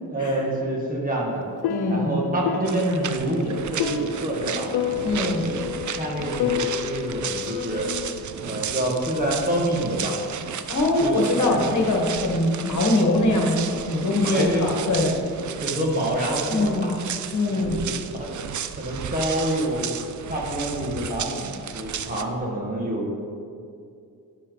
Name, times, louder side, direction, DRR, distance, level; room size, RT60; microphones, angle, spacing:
voice 1, 0.0-1.4 1.9-4.7 5.1-5.5 6.0-7.9 8.4-10.2 11.0-11.1 11.5-11.6 14.3-14.6 15.0-15.1 15.6-17.0 17.5-17.8 18.2-18.3 18.8-19.9 20.3-23.1, right 1 dB, 20° right, -3 dB, 2.1 m, -27 dB
sound 1, 1.3-8.2, left 8 dB, 90° left, 0.6 m, -30 dB
voice 2, 1.7-2.1 5.0-5.4 10.7-15.1 16.5-16.9 17.3-17.8, left 2 dB, 50° left, 0 dB, 1.7 m, -22 dB
sound 2, 2.6-22.2, right 8 dB, 50° right, 0.5 m, -34 dB
10.0 x 9.1 x 4.1 m, 2.4 s
wide cardioid pair, 115°, 37 cm